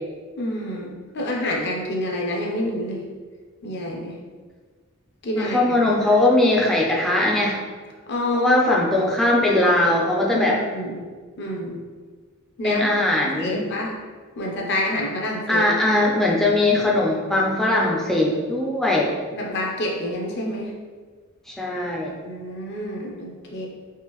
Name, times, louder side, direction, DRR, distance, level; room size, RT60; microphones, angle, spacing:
voice 1, 0.4-3.0 3.6-4.1 5.2-5.8 8.1-8.6 8.9-9.1 10.3-11.0 11.4-11.8 12.6-12.8 13.4-14.0 14.4-15.7 19.3-20.7 22.2-23.7, left 1 dB, 55° left, -1 dB, 0.6 m, -27 dB
voice 2, 5.4-7.6 8.3-10.6 12.6-13.7 15.5-19.1 21.5-22.2, left 1 dB, ahead, -3 dB, 0.4 m, -20 dB
3.5 x 2.5 x 3.0 m, 1.5 s
head